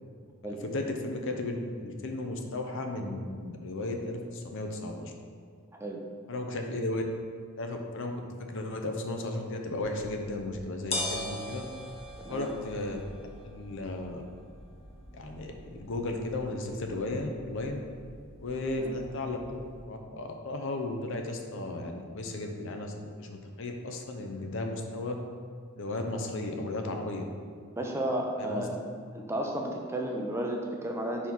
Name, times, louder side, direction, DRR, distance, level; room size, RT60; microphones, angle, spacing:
voice 1, 0.6-5.1 6.3-7.0 7.6-8.2 8.5-11.6 12.3-13.0 13.4-14.3 15.1-17.8 18.4-25.2 25.8-27.2 28.4-28.7, left 2 dB, 60° left, 3 dB, 0.6 m, -35 dB
sound 1, 9.8-19.8, left 1 dB, 30° left, 0.8 m, -42 dB
voice 2, 27.8-28.7 29.1-31.3, right 1 dB, 10° right, 0 dB, 0.5 m, -33 dB
4.5 x 4.2 x 5.3 m, 2.1 s
head